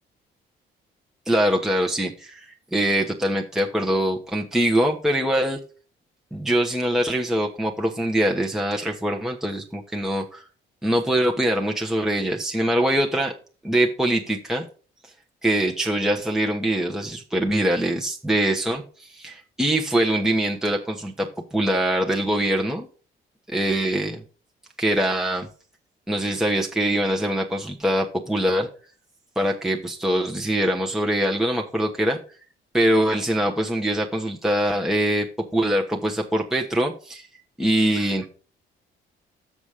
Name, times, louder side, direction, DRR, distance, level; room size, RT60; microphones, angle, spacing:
voice 1, 1.3-5.6 6.3-10.4 10.8-13.3 13.6-14.6 15.4-22.9 23.5-24.2 24.8-25.5 26.1-28.7 29.4-32.2 32.7-35.3 35.5-37.3 37.6-38.3, right 1 dB, ahead, 1 dB, 1.1 m, -23 dB
7.1 x 6.1 x 4.9 m, 0.38 s
cardioid pair, 90°, 20 cm